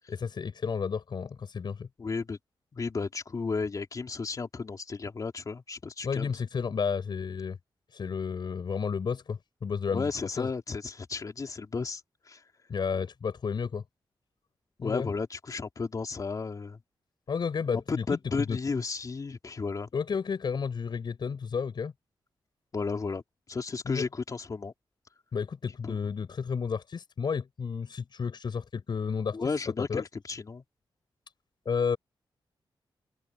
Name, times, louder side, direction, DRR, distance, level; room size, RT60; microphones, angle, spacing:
voice 1, 0.1-1.9 6.0-7.6 7.9-10.1 10.4-10.5 12.7-13.8 14.8-15.1 17.3-18.1 18.4-18.6 19.9-21.9 23.8-24.0 25.3-29.4 29.8-30.0 31.7-32.0, left 6 dB, 60° left, 5.9 m, -32 dB
voice 2, 2.0-2.4 2.7-6.3 9.9-12.4 14.8-16.8 17.7-19.9 22.7-23.2 23.5-24.7 25.8-26.0 29.3-30.6, left 4 dB, 40° left, 3.2 m, -33 dB
open air
wide cardioid pair, 115°, 9 cm